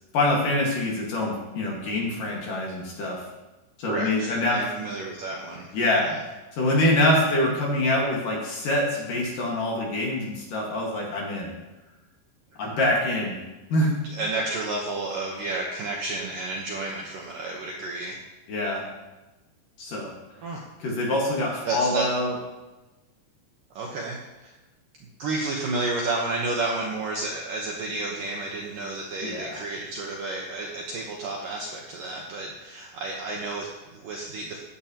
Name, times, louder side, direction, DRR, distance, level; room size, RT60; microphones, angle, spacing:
voice 1, 0.1-3.2 3.8-4.6 5.7-6.2 6.5-11.5 12.6-13.4 13.7-13.9 18.5-18.8 19.8-20.1 20.8-22.3 29.2-29.6, left 1 dB, 55° left, -2 dB, 2.8 m, -25 dB
voice 2, 3.9-5.7 14.1-18.2 20.4-20.6 21.7-22.0 23.8-24.5 25.2-34.6, right 2 dB, 70° right, -1 dB, 2.1 m, -31 dB
15.5 x 10.0 x 2.9 m, 1.1 s
omnidirectional pair, 5.3 m